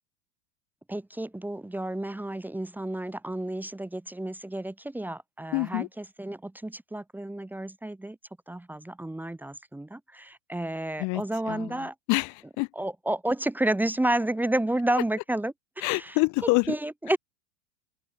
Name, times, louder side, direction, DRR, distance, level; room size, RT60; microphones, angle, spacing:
voice 1, 0.9-8.2 8.5-11.9 12.7-15.5 15.9-16.2 16.7-17.2, right 1 dB, 5° right, 1.1 m, -31 dB
voice 2, 5.5-5.9 11.0-12.7 15.8-16.8, left 28 dB, 50° left, 0.8 m, -27 dB
hypercardioid pair, 105°, 39 cm